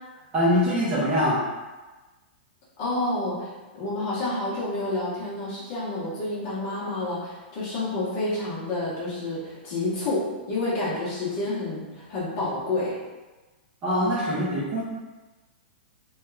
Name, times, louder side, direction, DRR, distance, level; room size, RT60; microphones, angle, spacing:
voice 1, 0.3-1.4 13.8-14.8, equal, 15° right, -8 dB, 0.6 m, -23 dB
voice 2, 2.8-13.0, left 2 dB, 25° left, -7 dB, 0.8 m, -29 dB
2.8 x 2.3 x 3.2 m, 1.2 s
supercardioid pair, 175°, 6 cm